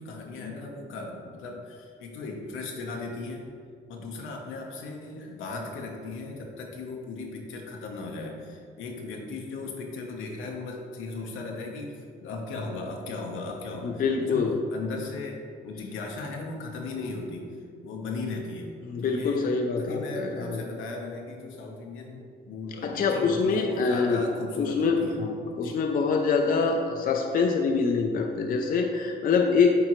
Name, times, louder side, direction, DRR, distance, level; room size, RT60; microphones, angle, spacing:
voice 1, 0.0-3.5 3.9-17.5 17.8-18.7 19.0-19.5 19.8-25.3 25.6-25.8, left 3 dB, 80° left, 1 dB, 1.0 m, -37 dB
voice 2, 13.8-14.6 18.8-20.7 22.8-24.2 24.6-29.7, left 5 dB, 45° left, 3 dB, 0.5 m, -25 dB
8.7 x 3.8 x 3.1 m, 2.2 s
cardioid pair, 90°, 20 cm